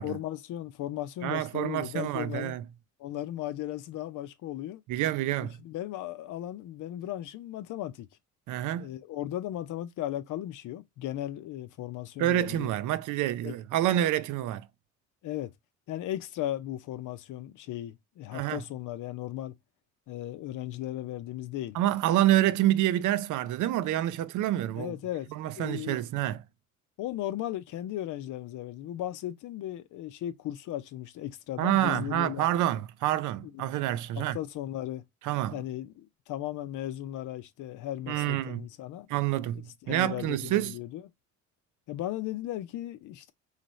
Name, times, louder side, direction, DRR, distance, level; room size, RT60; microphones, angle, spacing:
voice 1, 0.0-2.6 3.0-4.8 5.6-8.1 8.8-12.7 13.4-13.6 15.2-15.5 15.9-19.5 20.1-21.8 24.7-26.0 27.0-32.5 33.4-33.6 34.2-35.0 35.5-39.1 39.8-41.1 41.9-43.3, left 13 dB, 85° left, 0.7 m, -36 dB
voice 2, 1.2-2.6 4.9-5.5 8.5-8.9 12.2-14.6 18.3-18.6 21.7-24.9 25.3-26.4 31.6-34.4 35.2-35.6 38.1-38.6 39.1-40.7, right 13 dB, 80° right, 0.5 m, -27 dB
4.1 x 3.2 x 3.1 m
cardioid pair, 90°, 30 cm